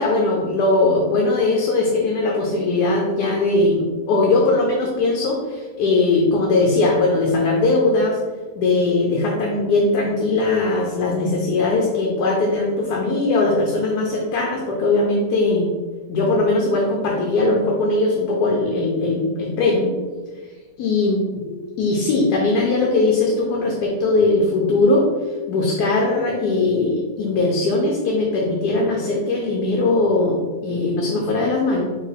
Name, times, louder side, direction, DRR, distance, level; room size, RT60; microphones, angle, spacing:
voice 1, 0.0-8.2 8.6-15.7 16.1-19.9 20.8-21.2 21.4-21.5 21.8-25.0 25.5-31.8, left 2 dB, 75° left, -1 dB, 1.2 m, -20 dB
4.5 x 3.3 x 3.4 m, 1.3 s
omnidirectional pair, 1.7 m